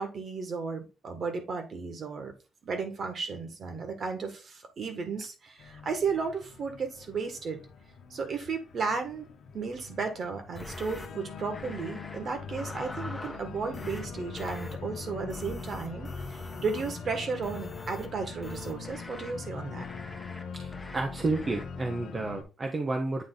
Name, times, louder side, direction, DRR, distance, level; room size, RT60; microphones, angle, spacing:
voice 1, 0.0-2.3 2.6-7.6 8.1-9.3 9.5-19.8, right 5 dB, 40° right, 1.6 m, -34 dB
Organ, 5.6-22.4, left 5 dB, 70° left, 1.1 m, -42 dB
sound 1, 10.6-11.1 11.5-12.2 12.5-13.4 13.7-14.1 14.4-14.7 15.3-17.0 17.4-18.1 18.4-19.3 19.8-20.4 20.7-21.0 21.3-21.6, left 2 dB, 10° left, 0.9 m, -43 dB
voice 2, 20.5-23.2, right 3 dB, 25° right, 0.7 m, -31 dB
8.8 x 3.6 x 3.8 m
cardioid pair, 170°, 0 cm